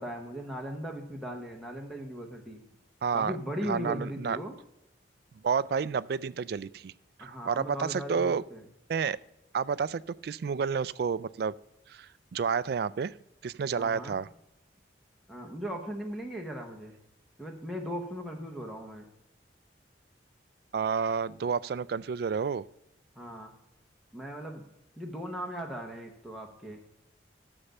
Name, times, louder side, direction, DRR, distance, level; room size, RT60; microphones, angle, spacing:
voice 1, 0.0-2.6 3.1-4.6 7.2-8.6 13.8-14.2 15.3-16.9 17.4-19.1 23.2-23.5 24.1-24.7 25.0-26.8, equal, ahead, 2 dB, 1.1 m, -38 dB
voice 2, 3.0-3.4 3.7-4.4 5.4-6.9 7.2-8.4 8.9-9.2 9.5-11.5 11.9-13.1 13.4-14.3 20.7-22.6, right 6 dB, 55° right, 18 dB, 0.3 m, -30 dB
9.9 x 7.0 x 5.3 m, 0.85 s
head